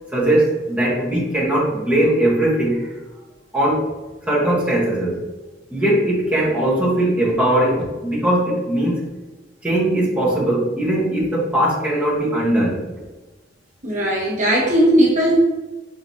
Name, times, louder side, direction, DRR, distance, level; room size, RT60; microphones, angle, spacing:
voice 1, 0.1-2.9 3.5-3.8 4.2-5.2 5.7-9.0 9.6-12.8, right 1 dB, 5° right, -7 dB, 1.3 m, -19 dB
voice 2, 13.8-15.4, right 1 dB, 40° right, -4 dB, 1.1 m, -17 dB
4.8 x 3.9 x 2.7 m, 1.2 s
head